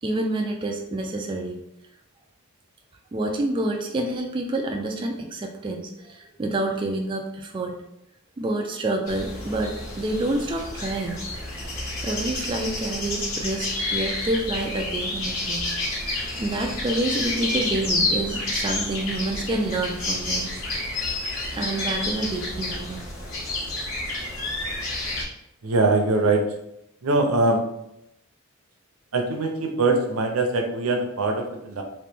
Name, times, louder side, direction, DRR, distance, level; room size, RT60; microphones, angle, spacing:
voice 1, 0.0-1.6 3.1-7.7 8.4-11.2 12.0-15.7 16.4-20.5 21.5-23.0, right 2 dB, 25° right, 1 dB, 0.3 m, -28 dB
sound 1, 9.1-25.2, left 2 dB, 85° left, 1.3 m, -29 dB
voice 2, 25.6-26.4 27.0-27.6 29.1-31.8, right 2 dB, 80° right, 3 dB, 0.6 m, -22 dB
3.0 x 2.9 x 3.4 m, 0.83 s
head